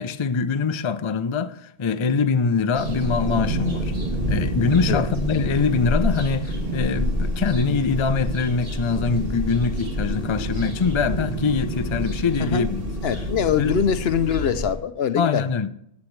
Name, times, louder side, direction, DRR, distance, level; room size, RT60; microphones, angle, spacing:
voice 1, 0.0-3.9 4.3-12.8 13.6-13.7 15.2-15.7, left 5 dB, 35° left, 0.5 m, -23 dB
sound 1, 2.7-14.7, equal, 55° right, 2.7 m, -27 dB
voice 2, 13.0-15.4, left 8 dB, 65° left, 0.8 m, -23 dB
14.5 x 8.4 x 3.3 m
omnidirectional pair, 1.2 m